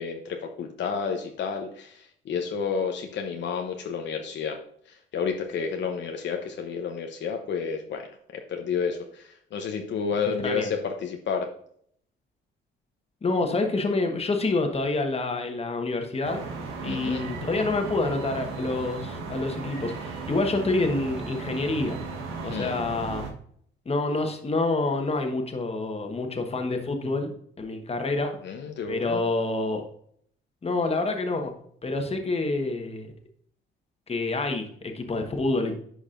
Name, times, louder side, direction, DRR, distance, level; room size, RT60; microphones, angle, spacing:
voice 1, 0.0-4.6 4.9-8.1 8.3-11.5 16.8-17.2 22.5-22.8 28.4-29.2, left 6 dB, 65° left, 4 dB, 0.8 m, -30 dB
voice 2, 13.2-16.4 16.8-22.0 22.4-23.3 23.8-28.3 28.9-29.8 30.6-31.5 31.8-33.1 34.1-35.7, left 2 dB, 30° left, 4 dB, 1.3 m, -27 dB
sound 1, 16.2-23.3, right 4 dB, 90° right, 1.3 m, -36 dB
10.0 x 4.7 x 2.5 m, 0.63 s
cardioid pair, 90°, 20 cm